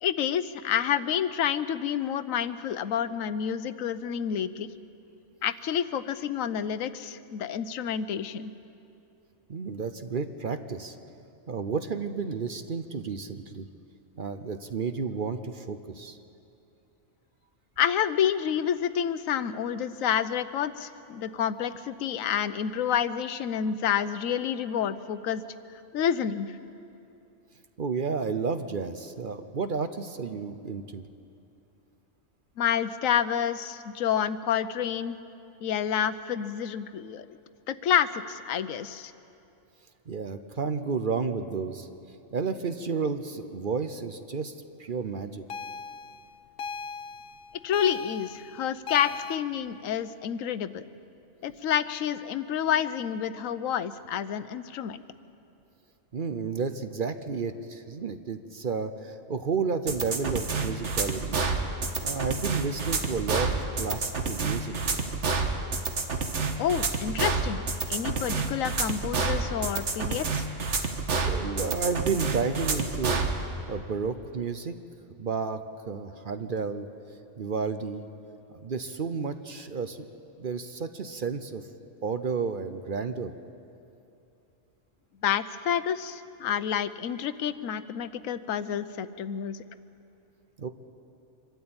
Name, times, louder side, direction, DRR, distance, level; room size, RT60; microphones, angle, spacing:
voice 1, 0.0-4.7 5.4-8.5 17.8-25.4 25.9-26.6 32.6-35.2 35.6-37.2 37.7-39.1 47.6-50.8 51.4-55.0 66.6-67.6 67.9-70.5 85.2-89.6, left 9 dB, 85° left, 13 dB, 1.1 m, -29 dB
voice 2, 9.5-11.0 11.5-13.7 14.2-16.2 27.8-31.1 40.1-41.9 42.3-44.5 44.8-45.4 56.1-61.4 62.0-65.0 71.3-73.2 73.7-74.8 75.2-75.6 75.9-76.9 77.4-78.1 78.5-80.0 80.4-81.6 82.0-83.3 90.6-90.7, right 5 dB, 50° right, 9 dB, 0.8 m, -31 dB
sound 1, 45.5-49.4, left 5 dB, 55° left, 0.7 m, -38 dB
sound 2, 59.9-73.3, right 4 dB, 65° right, 1.7 m, -28 dB
24.5 x 12.5 x 8.7 m, 2.7 s
omnidirectional pair, 1.4 m